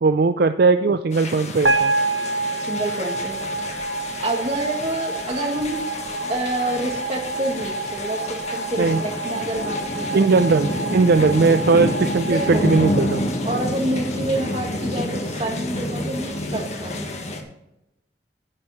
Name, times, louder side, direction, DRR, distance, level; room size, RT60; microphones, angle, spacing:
voice 1, 0.0-1.9 8.8-9.0 10.1-13.2, right 4 dB, 60° right, 10 dB, 0.4 m, -18 dB
sound 1, 1.1-17.4, left 1 dB, 40° left, 1.4 m, -29 dB
sound 2, 1.6-13.9, right 3 dB, 85° right, 1.3 m, -28 dB
voice 2, 2.6-3.7 4.0-5.8 6.3-10.3 12.2-12.7 13.4-17.1, right 1 dB, 35° right, 2 dB, 1.7 m, -28 dB
10.0 x 9.5 x 4.3 m, 0.88 s
head